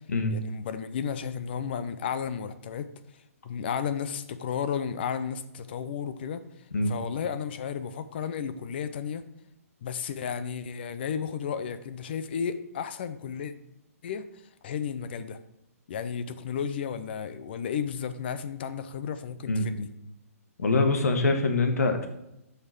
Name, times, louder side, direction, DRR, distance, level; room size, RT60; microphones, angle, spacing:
voice 1, 0.3-2.9 3.4-6.4 6.9-9.2 9.8-13.5 14.0-14.3 14.6-15.4 15.9-19.9, left 7 dB, 40° left, 12 dB, 0.7 m, -33 dB
voice 2, 20.6-22.1, left 3 dB, 80° left, 6 dB, 1.7 m, -24 dB
7.8 x 5.8 x 6.6 m, 0.84 s
hypercardioid pair, 165°, 8 cm